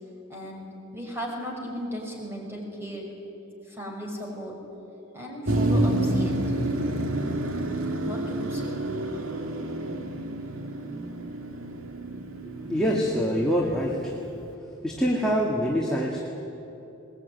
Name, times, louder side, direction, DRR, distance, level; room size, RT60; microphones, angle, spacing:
voice 1, 0.3-0.6 0.9-3.1 3.7-4.6 5.1-6.4 7.9-8.7, equal, 10° right, -1 dB, 5.8 m, -36 dB
Motor vehicle (road), 5.5-14.4, right 1 dB, 80° right, 1.9 m, -29 dB
voice 2, 12.4-14.2 14.8-16.2, equal, 5° left, -4 dB, 2.2 m, -25 dB
21.5 x 20.0 x 9.6 m, 3.0 s
head